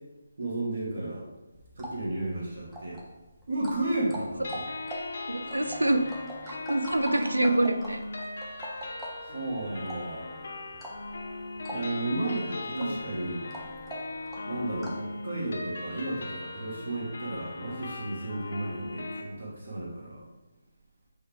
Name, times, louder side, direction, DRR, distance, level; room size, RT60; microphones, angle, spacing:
voice 1, 0.4-1.3 1.7-3.0 3.5-4.6 9.2-10.3 11.7-13.4 14.5-20.3, right 2 dB, 55° right, -4 dB, 1.3 m, -33 dB
sound 1, 1.5-15.1, equal, 5° right, 0.5 m, -43 dB
sound 2, 4.4-19.2, left 2 dB, 50° left, 0.6 m, -39 dB
voice 2, 5.3-6.0 6.5-8.0 12.7-13.0 14.7-14.9, right 2 dB, 80° right, 7 dB, 0.4 m, -26 dB
6.2 x 2.3 x 3.3 m, 1.1 s
figure-of-eight pair, 150°, 0 cm